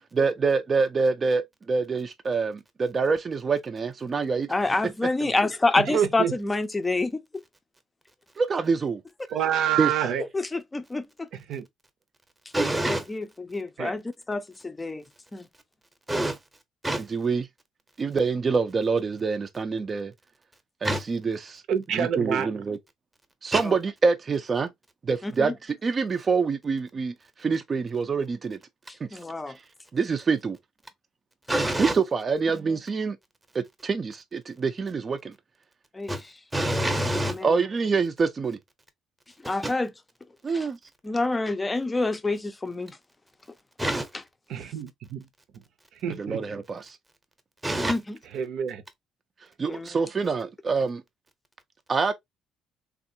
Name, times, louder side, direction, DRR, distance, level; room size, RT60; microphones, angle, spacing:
voice 1, 0.1-4.5 5.2-5.3 8.4-9.0 9.8-9.9 17.0-17.5 18.0-20.1 20.8-21.6 21.9-22.8 23.4-24.7 25.0-28.6 29.0-29.2 29.5-29.6 29.9-30.6 31.8-33.2 33.5-35.3 37.4-38.6 40.4-40.8 46.2-47.0 49.6-51.0 51.9-52.1, right 4 dB, 35° right, 0.4 m, -26 dB
voice 2, 4.5-7.4 10.2-11.3 12.9-15.0 15.3-15.5 23.6-23.8 25.2-25.5 28.9-29.6 31.6-31.8 35.9-36.4 37.1-37.7 39.4-39.9 40.5-40.7 41.0-43.0 43.8-43.9 47.9-48.2 49.7-50.1, left 2 dB, 20° left, 0.5 m, -28 dB
voice 3, 5.8-6.3 9.3-10.2 11.5-11.7 13.8-13.9 21.7-22.5 44.5-45.3 45.5-45.6 46.0-46.4 48.3-48.8, right 9 dB, 70° right, 0.6 m, -27 dB
voice 4, 12.5-13.0 16.1-16.4 16.8-17.0 20.8-21.0 23.5-23.6 31.5-31.9 36.1-36.2 36.5-37.4 39.6-39.7 43.8-44.0 47.6-47.9, right 1 dB, 10° right, 0.8 m, -26 dB
3.5 x 2.4 x 2.7 m
cardioid pair, 100°, 0 cm